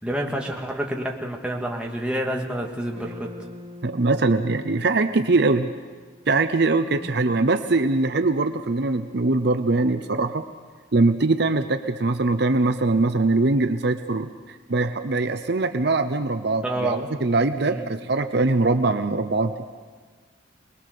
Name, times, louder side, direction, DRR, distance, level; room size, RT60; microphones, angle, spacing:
voice 1, 0.0-3.3 7.0-7.1 16.6-17.0 17.6-17.9, right 1 dB, 5° right, -1 dB, 2.0 m, -28 dB
sound 1, 2.9-7.3, left 1 dB, 30° right, 2.8 m, -45 dB
voice 2, 3.8-5.7 6.3-10.4 10.9-19.5, right 3 dB, 55° right, 8 dB, 0.8 m, -22 dB
24.0 x 20.5 x 6.7 m, 1.5 s
head